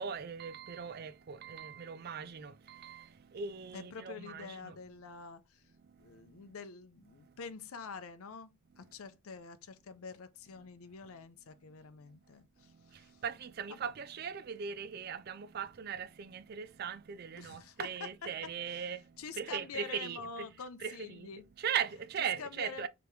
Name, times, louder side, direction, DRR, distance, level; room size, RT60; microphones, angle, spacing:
voice 1, 0.0-4.8 5.8-6.5 7.0-7.5 8.7-8.9 10.5-10.7 11.0-11.1 12.3-22.9, right 7 dB, 45° right, 0.4 m, -40 dB
voice 2, 3.7-5.6 6.0-8.5 8.8-13.2 17.3-17.9 18.7-18.8 19.2-21.4 22.2-22.9, left 5 dB, 75° left, 0.6 m, -47 dB
5.0 x 3.4 x 3.1 m
head